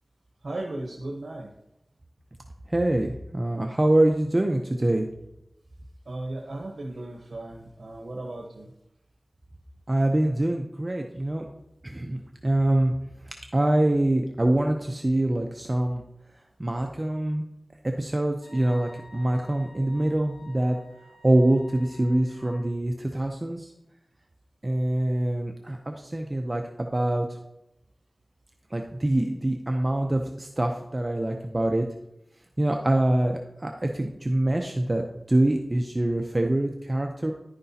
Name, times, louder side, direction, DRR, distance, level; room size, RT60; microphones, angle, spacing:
voice 1, 0.4-1.5 6.1-8.7, right 2 dB, 80° right, 0 dB, 1.0 m, -36 dB
voice 2, 2.7-5.1 9.9-11.5 11.8-12.9 13.3-16.0 16.6-17.5 18.0-20.8 21.2-23.7 24.6-27.4 28.7-31.8 32.6-37.3, right 1 dB, 35° right, 3 dB, 0.6 m, -25 dB
Wind instrument woodwind instrument, 18.4-22.7, left 3 dB, 90° left, 3.8 m, -51 dB
10.5 x 9.7 x 2.8 m, 0.88 s
wide cardioid pair, 60°, 0 cm